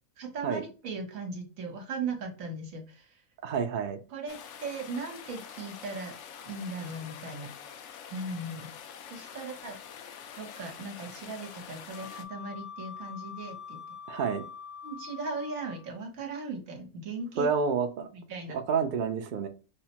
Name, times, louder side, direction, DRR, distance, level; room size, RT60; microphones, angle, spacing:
voice 1, 0.2-3.2 4.1-6.1 6.5-8.7 9.1-9.8 10.4-14.0 14.8-17.5 18.1-18.6, right 3 dB, 70° right, 4 dB, 1.3 m, -38 dB
voice 2, 3.4-4.0 14.1-14.4 17.4-18.1 18.5-19.5, right 6 dB, 85° right, 7 dB, 0.4 m, -29 dB
sound 1, 4.3-12.2, left 8 dB, 65° left, 0.8 m, -46 dB
Wind instrument woodwind instrument, 11.9-16.0, left 6 dB, 40° left, 0.8 m, -44 dB
5.3 x 2.1 x 2.8 m, 0.34 s
omnidirectional pair, 1.5 m